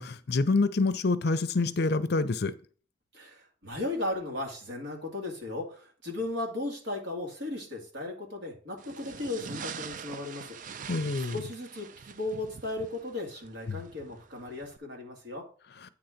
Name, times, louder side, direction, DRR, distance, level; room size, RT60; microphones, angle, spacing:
voice 1, 0.0-2.5 10.9-11.4 13.7-13.8, left 3 dB, 60° left, 0.6 m, -27 dB
voice 2, 3.1-10.6 11.3-15.4, left 2 dB, 75° right, 2.5 m, -36 dB
sound 1, 8.8-14.8, right 6 dB, 45° right, 0.4 m, -44 dB
8.7 x 3.9 x 5.8 m
head